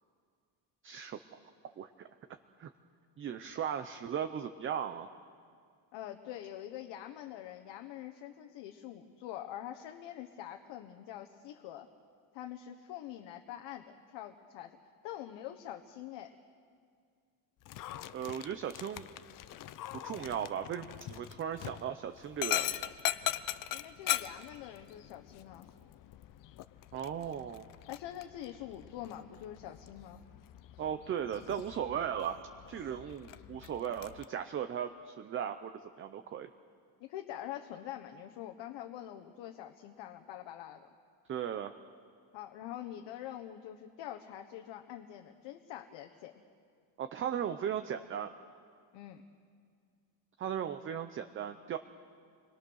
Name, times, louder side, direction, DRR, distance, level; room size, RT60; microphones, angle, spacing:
voice 1, 0.8-1.4 1.8-2.1 2.6-2.7 3.2-5.1 18.1-19.1 20.0-22.9 26.9-27.7 30.8-32.4 32.7-35.7 36.0-36.5 41.3-41.7 47.0-48.3 50.4-51.8, right 9 dB, 30° right, 8 dB, 0.6 m, -37 dB
voice 2, 5.9-11.9 12.3-14.8 15.0-16.3 23.7-25.7 27.9-30.2 37.0-40.9 42.3-46.4 48.9-49.2, left 12 dB, 75° left, 5 dB, 1.4 m, -45 dB
Dog, 17.6-34.2, left 13 dB, 45° left, 0.7 m, -41 dB
29.0 x 21.5 x 6.4 m, 2.2 s
cardioid pair, 170°, 44 cm